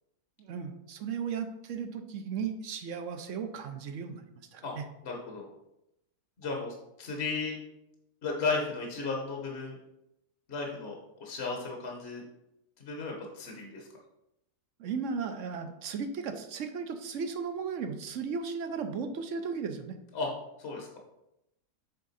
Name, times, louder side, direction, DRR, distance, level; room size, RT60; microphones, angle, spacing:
voice 1, 0.4-4.2 4.5-4.8 14.8-20.0, right 6 dB, 65° right, 7 dB, 0.9 m, -35 dB
voice 2, 5.0-5.5 6.4-7.6 8.2-9.8 10.5-12.2 12.8-13.9 20.1-20.3 20.6-20.9, left 4 dB, 45° left, -1 dB, 1.2 m, -34 dB
8.3 x 3.7 x 4.0 m, 0.87 s
omnidirectional pair, 1.7 m